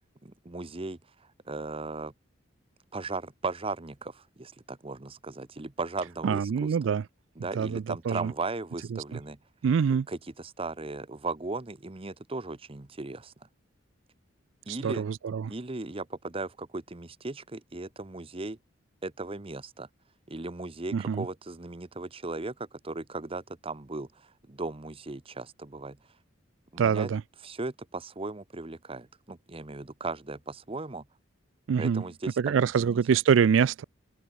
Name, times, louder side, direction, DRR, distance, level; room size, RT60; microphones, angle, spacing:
voice 1, 0.2-2.1 2.9-6.8 7.4-9.4 10.1-13.3 14.7-15.1 15.5-18.6 19.0-19.9 20.3-26.0 26.7-27.1 27.4-31.1 31.8-33.0, right 3 dB, 30° right, 1.0 m, -37 dB
voice 2, 6.2-7.0 7.6-8.3 8.9-9.0 9.6-10.1 14.7-15.5 20.9-21.2 26.8-27.2 31.7-32.0 32.4-33.8, right 7 dB, 70° right, 0.4 m, -25 dB
open air
head